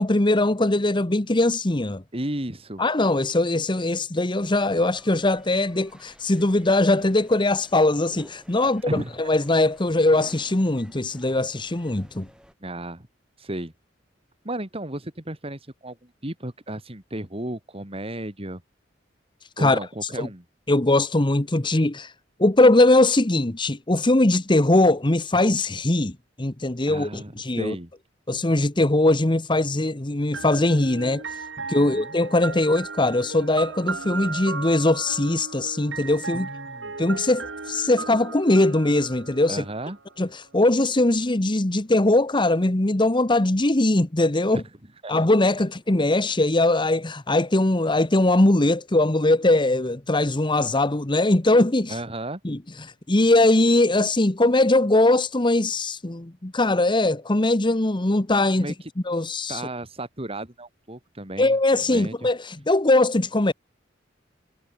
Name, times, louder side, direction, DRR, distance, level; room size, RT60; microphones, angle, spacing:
voice 1, 0.0-2.0 2.8-12.3 19.6-19.8 20.2-20.3 20.7-22.1 22.4-27.7 28.3-31.2 31.7-36.5 37.0-39.6 40.2-44.6 45.1-52.0 52.4-58.7 59.1-59.6 61.4-63.5, left 2 dB, 25° left, 1.2 m, -21 dB
voice 2, 2.1-2.8 8.6-9.2 12.6-13.1 13.4-13.7 14.4-18.6 19.6-20.4 26.9-27.9 31.6-32.1 36.3-37.0 39.5-40.0 44.5-44.6 45.0-45.1 51.9-52.4 58.6-58.9 59.5-62.3, right 1 dB, 30° right, 3.4 m, -34 dB
sound 1, 4.3-12.5, equal, 5° right, 6.8 m, -53 dB
sound 2, 30.3-40.1, right 4 dB, 80° right, 3.2 m, -36 dB
head